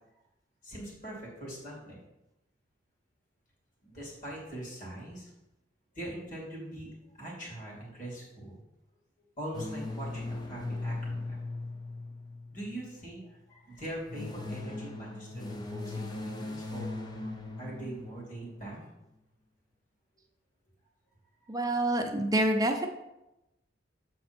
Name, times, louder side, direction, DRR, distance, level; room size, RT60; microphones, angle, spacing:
voice 1, 0.6-2.0 3.8-5.3 5.9-6.9 7.2-8.6 9.4-11.6 12.5-17.0 17.6-18.8, right 1 dB, 45° left, -4 dB, 2.7 m, -42 dB
sound 1, 9.5-12.9 13.8-18.6, left 2 dB, 25° left, 0.7 m, -39 dB
voice 2, 21.5-22.9, right 1 dB, 20° right, 3 dB, 0.7 m, -27 dB
7.8 x 4.2 x 4.4 m, 0.93 s
head